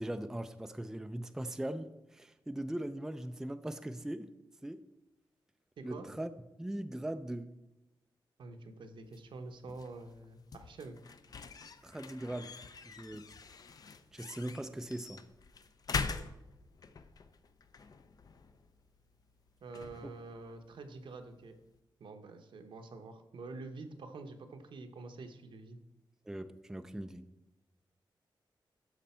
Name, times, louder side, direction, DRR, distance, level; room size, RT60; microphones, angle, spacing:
voice 1, 0.0-4.4 4.6-4.9 5.8-6.3 6.6-7.6 11.8-12.6 12.8-13.3 14.1-15.2 20.0-20.1 26.3-27.3, right 1 dB, 5° right, 0.4 m, -40 dB
voice 2, 5.8-6.1 8.4-11.0 19.6-21.5 22.0-25.8, right 3 dB, 75° right, 1.0 m, -47 dB
sound 1, 9.0-21.8, left 5 dB, 50° left, 0.5 m, -45 dB
13.0 x 5.1 x 4.4 m
wide cardioid pair, 145°, 9 cm